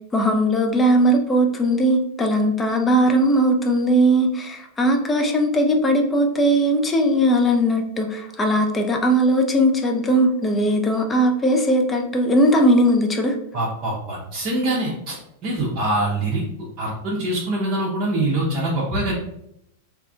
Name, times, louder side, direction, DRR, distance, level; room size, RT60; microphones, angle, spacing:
voice 1, 0.1-13.3, right 1 dB, 15° left, 3 dB, 0.4 m, -19 dB
voice 2, 13.5-15.2 15.4-16.4 16.8-19.1, right 1 dB, 35° right, -5 dB, 0.6 m, -24 dB
2.7 x 2.3 x 2.3 m, 0.78 s
figure-of-eight pair, 90°, 0 cm